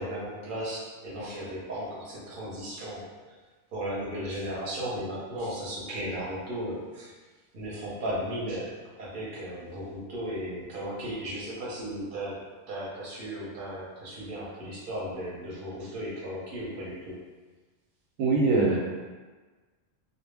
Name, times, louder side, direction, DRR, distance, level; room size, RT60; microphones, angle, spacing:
voice 1, 0.0-3.1 3.7-7.1 7.5-12.4 12.7-17.2, equal, 45° right, -7 dB, 0.9 m, -35 dB
voice 2, 18.2-18.8, right 3 dB, 90° right, -1 dB, 1.0 m, -22 dB
2.3 x 2.0 x 3.2 m, 1.3 s
omnidirectional pair, 1.3 m